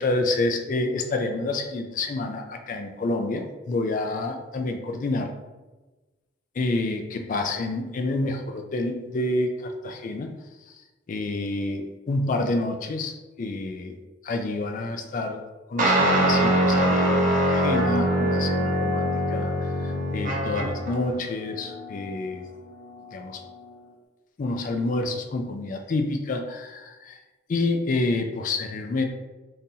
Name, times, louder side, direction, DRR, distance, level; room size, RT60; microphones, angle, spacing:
voice 1, 0.0-5.3 6.6-10.3 10.7-10.8 11.1-14.0 14.2-15.4 15.7-22.5 23.1-23.4 24.4-27.2 27.5-29.0, left 2 dB, 40° left, 5 dB, 0.3 m, -28 dB
sound 1, 15.8-20.9, right 1 dB, 40° right, 0.6 m, -22 dB
sound 2, 17.7-23.9, left 2 dB, 75° left, 0.6 m, -36 dB
3.8 x 2.6 x 2.7 m, 1.2 s
head